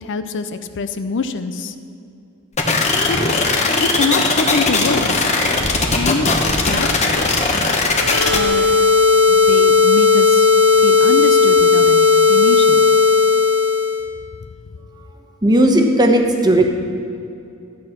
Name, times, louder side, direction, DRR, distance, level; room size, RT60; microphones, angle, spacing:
voice 1, 0.0-1.7 3.1-3.4 3.8-5.3 5.9-6.3 6.5-7.1 8.3-8.7 9.3-10.5 10.8-12.8, left 4 dB, 60° left, 10 dB, 0.5 m, -24 dB
sound 1, 2.6-8.4, left 3 dB, 35° left, 1.2 m, -18 dB
sound 2, 7.9-14.0, left 4 dB, 70° right, 2.2 m, -14 dB
voice 2, 15.4-16.6, right 1 dB, 20° right, 3 dB, 1.1 m, -14 dB
12.5 x 8.5 x 5.8 m, 2.6 s
head